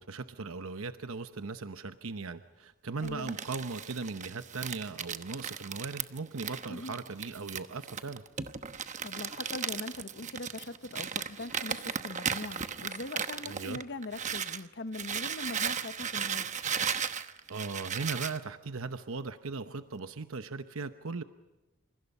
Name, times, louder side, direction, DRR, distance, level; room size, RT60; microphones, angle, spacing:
voice 1, 0.0-8.2 13.5-13.8 17.5-21.2, right 4 dB, 70° right, 9 dB, 0.9 m, -38 dB
voice 2, 3.0-3.4 6.7-6.9 9.0-16.5, left 2 dB, 50° left, 11 dB, 0.9 m, -41 dB
Crumpling crinkling, 3.0-14.6 14.9-18.4, right 7 dB, 35° right, 1.0 m, -36 dB
28.5 x 27.5 x 5.5 m, 1.0 s
head